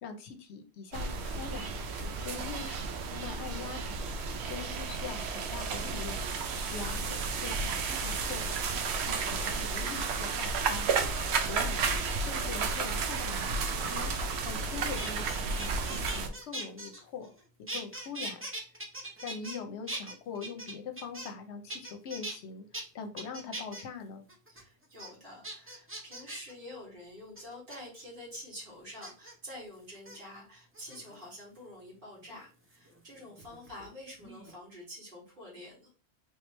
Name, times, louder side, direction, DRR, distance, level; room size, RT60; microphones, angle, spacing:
voice 1, 0.0-1.7 2.2-2.8 3.1-4.0 4.4-6.3 6.6-11.8 12.2-14.1 14.4-17.3 17.6-18.5 19.2-24.2, left 6 dB, 75° left, 6 dB, 0.9 m, -43 dB
sound 1, 0.9-16.3, right 4 dB, 70° right, 0.8 m, -32 dB
voice 2, 1.9-2.3 11.6-11.8 24.5-35.9, left 1 dB, 50° right, -5 dB, 2.1 m, -47 dB
sound 2, 14.6-17.4 17.7-19.6 19.9-21.4 21.7-22.4 22.7-22.8 23.2-23.8 24.3-24.6 25.0-25.1 25.4-26.5 27.4-27.8 29.0-29.3 29.9-30.2 30.7-31.3 32.7-33.9 34.2-34.6, right 1 dB, 20° right, 0.4 m, -41 dB
3.4 x 3.0 x 3.1 m, 0.36 s
omnidirectional pair, 1.2 m